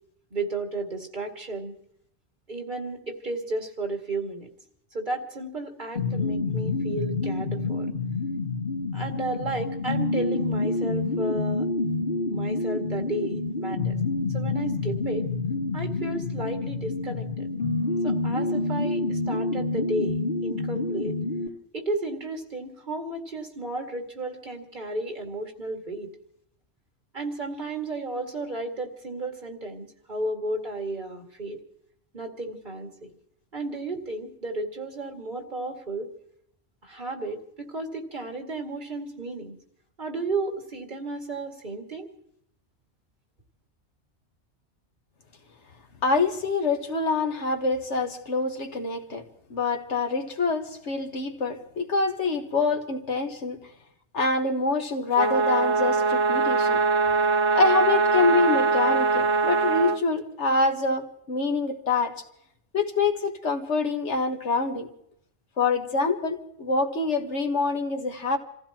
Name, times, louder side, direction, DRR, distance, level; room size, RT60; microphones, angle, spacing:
voice 1, 0.3-1.8 2.5-4.5 4.9-7.9 8.9-11.7 12.3-13.9 14.3-15.3 15.7-17.5 18.0-21.2 21.7-26.1 27.1-31.6 32.1-33.1 33.5-36.1 36.8-39.5 40.0-42.1, right 2 dB, 45° right, 2 dB, 2.3 m, -33 dB
sound 1, 6.0-21.5, left 3 dB, 55° left, 2.1 m, -28 dB
voice 2, 46.0-49.2 49.5-53.6 54.1-56.8 57.5-62.1 62.7-64.9 65.6-68.4, left 3 dB, 85° left, 4 dB, 1.9 m, -25 dB
sound 2, 55.1-60.0, right 4 dB, 90° right, 1.4 m, -22 dB
28.5 x 15.5 x 3.0 m, 0.73 s
omnidirectional pair, 1.1 m